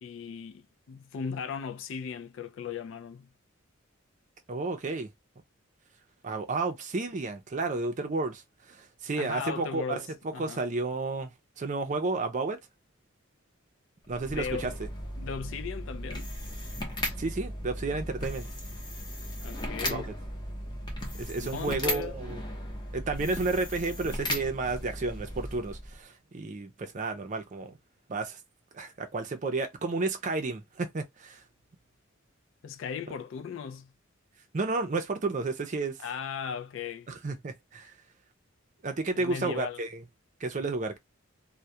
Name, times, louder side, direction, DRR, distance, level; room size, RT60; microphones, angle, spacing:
voice 1, 0.0-3.3 9.2-10.1 10.3-10.6 14.3-14.7 15.2-16.3 19.4-20.1 21.4-22.2 32.6-33.9 36.0-37.1 39.2-39.8, left 6 dB, 65° left, 0.3 m, -37 dB
voice 2, 4.5-5.1 6.2-8.4 8.7-11.3 11.6-12.6 14.1-14.7 17.2-18.5 19.8-20.0 21.2-22.4 22.9-27.8 28.1-28.4 28.7-31.4 34.5-36.0 37.1-37.9 38.8-40.0 40.4-41.0, right 3 dB, 40° right, 0.5 m, -32 dB
sound 1, 14.0-26.0, equal, 20° left, 0.7 m, -36 dB
2.2 x 2.1 x 2.6 m
head